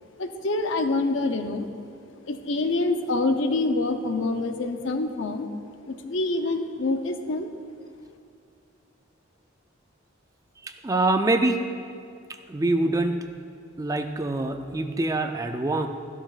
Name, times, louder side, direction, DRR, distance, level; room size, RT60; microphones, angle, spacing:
voice 1, 0.2-1.7 2.3-5.5 5.8-7.5, left 2 dB, 65° left, 7 dB, 0.7 m, -26 dB
voice 2, 10.6-11.6 12.5-13.2 13.8-15.9, right 2 dB, 15° right, 6 dB, 0.4 m, -25 dB
13.5 x 12.0 x 2.4 m, 2.3 s
head